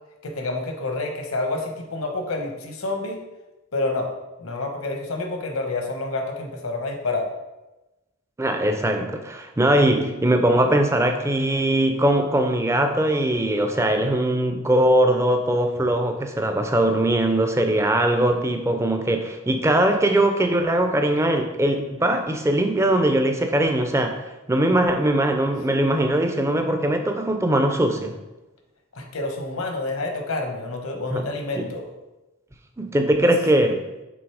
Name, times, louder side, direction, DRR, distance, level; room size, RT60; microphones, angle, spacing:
voice 1, 0.2-3.2 3.7-4.1 4.4-7.3 28.9-31.9 33.2-33.3, left 2 dB, 75° left, 3 dB, 1.0 m, -28 dB
voice 2, 8.4-28.1 31.1-31.2 31.6-31.7 32.8-33.9, right 1 dB, 15° right, 5 dB, 0.5 m, -21 dB
6.1 x 3.8 x 4.8 m, 1.0 s
head